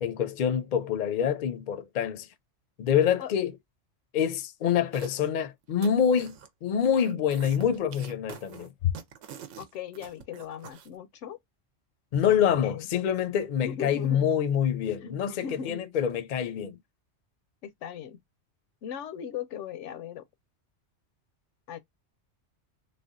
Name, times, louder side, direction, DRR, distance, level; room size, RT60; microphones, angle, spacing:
voice 1, 0.0-2.3 2.8-3.5 4.1-8.9 12.1-16.8, left 8 dB, 55° left, 0.5 m, -26 dB
sound 1, 4.9-5.3 5.6-6.5 6.8-10.9, right 8 dB, 85° right, 1.0 m, -46 dB
voice 2, 9.6-11.4 12.3-12.9 13.6-14.3 15.0-15.8 17.6-18.2 18.8-20.2 21.7-21.8, left 8 dB, 80° left, 0.9 m, -38 dB
3.4 x 2.2 x 2.4 m
omnidirectional pair, 1.2 m